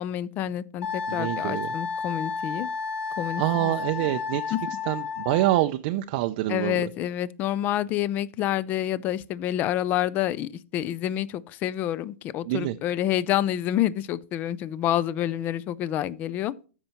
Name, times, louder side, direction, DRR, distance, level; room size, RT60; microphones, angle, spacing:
voice 1, 0.0-2.7 3.2-3.7 4.0-4.1 4.5-4.6 6.5-16.7, left 12 dB, 20° left, 0.4 m, -28 dB
Wind instrument woodwind instrument, 0.8-5.7, left 5 dB, 55° left, 2.3 m, -32 dB
voice 2, 1.1-1.7 3.4-4.5 4.9-6.8 12.5-12.8, right 16 dB, 35° right, 0.5 m, -26 dB
13.0 x 5.5 x 3.0 m
hypercardioid pair, 160°, 8 cm